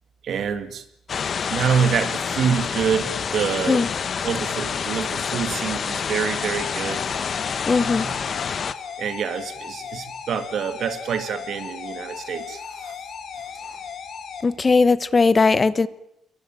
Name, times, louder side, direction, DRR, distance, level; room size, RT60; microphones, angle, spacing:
voice 1, 0.2-0.8 1.5-3.8 4.2-7.1 7.8-8.4 9.0-12.9, right 7 dB, 65° right, 10 dB, 2.2 m, -26 dB
sound 1, 1.1-8.7, left 6 dB, 50° left, 1.2 m, -27 dB
sound 2, 6.4-14.4, left 6 dB, 65° left, 3.5 m, -36 dB
voice 2, 7.7-8.1 14.4-15.9, left 4 dB, 30° left, 16 dB, 1.0 m, -18 dB
23.0 x 20.5 x 9.0 m, 0.82 s
cardioid pair, 90°, 0 cm